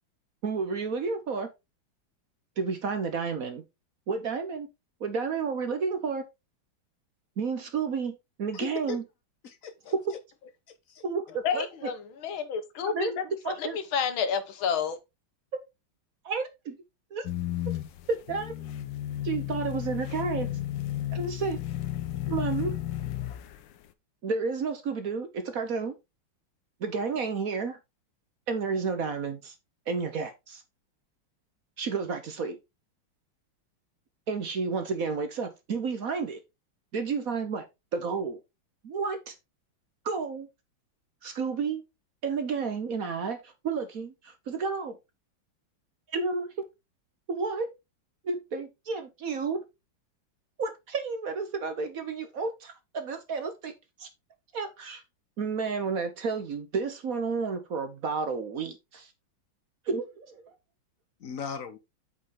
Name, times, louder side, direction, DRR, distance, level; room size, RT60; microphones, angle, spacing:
voice 1, 0.4-1.5 2.6-3.6 4.1-4.7 5.0-6.3 7.4-9.0 9.9-10.1 11.0-11.6 12.9-13.8 15.5-15.6 16.2-16.8 17.1-17.3 18.1-18.7 19.2-20.5 21.1-21.6 22.3-22.8 24.2-25.9 26.8-27.8 28.5-29.5 29.9-30.6 31.8-32.6 34.3-36.4 36.9-37.7 37.9-38.4 38.8-39.3 40.0-40.5 41.2-41.8 42.2-45.0 46.1-46.6 47.3-47.7 48.2-49.6 50.6-53.7 54.0-54.1 54.5-55.0 55.4-59.1 59.9-60.4, right 5 dB, 55° right, 1.2 m, -31 dB
voice 2, 8.5-9.0 9.4-9.9 10.9-11.0 61.2-61.8, left 5 dB, 50° left, 1.1 m, -37 dB
voice 3, 11.4-13.2 13.6-15.0, left 7 dB, 90° left, 1.9 m, -30 dB
sound 1, 17.2-23.7, left 13 dB, 70° left, 1.4 m, -33 dB
8.0 x 5.4 x 3.7 m
omnidirectional pair, 2.2 m